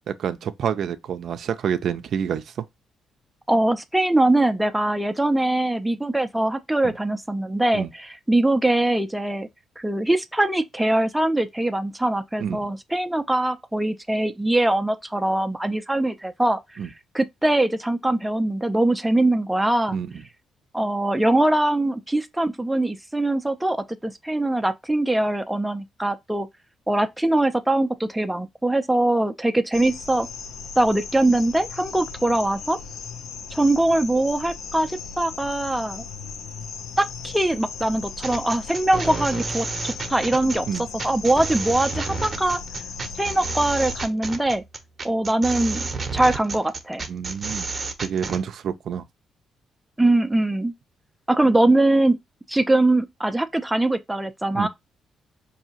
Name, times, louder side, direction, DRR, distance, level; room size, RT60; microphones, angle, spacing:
voice 1, 0.1-2.5 6.8-6.9 7.7-7.9 12.4-12.7 16.8-16.9 19.9-20.1 40.7-40.8 47.1-47.7 48.0-49.1 54.5-54.7, right 8 dB, 65° right, 0.4 m, -28 dB
voice 2, 3.5-9.5 9.8-16.6 17.1-20.0 20.7-26.5 26.9-30.3 30.8-32.8 33.5-36.0 37.0-42.6 43.2-44.6 45.0-45.8 46.1-47.0 50.0-50.7 51.3-52.2 52.5-54.7, right 1 dB, 5° right, 0.4 m, -22 dB
sound 1, 29.7-44.1, left 5 dB, 80° left, 0.6 m, -37 dB
sound 2, 38.2-48.4, right 3 dB, 30° right, 0.8 m, -31 dB
4.7 x 2.7 x 2.8 m
cardioid pair, 90°, 0 cm